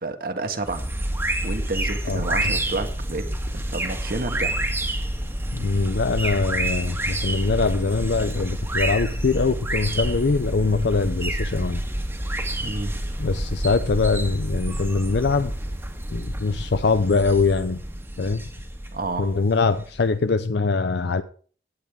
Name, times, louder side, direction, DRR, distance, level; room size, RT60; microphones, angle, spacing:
voice 1, 0.0-0.9 1.4-3.2 3.5-4.6 12.6-13.0 18.9-19.3, right 2 dB, 55° right, 7 dB, 1.6 m, -30 dB
sound 1, 0.6-20.1, right 1 dB, 15° right, 1.8 m, -28 dB
voice 2, 5.5-11.8 13.2-15.5 16.1-17.8 18.2-18.4 19.2-21.2, left 4 dB, 65° left, 11 dB, 0.6 m, -23 dB
17.5 x 8.7 x 3.6 m, 0.43 s
head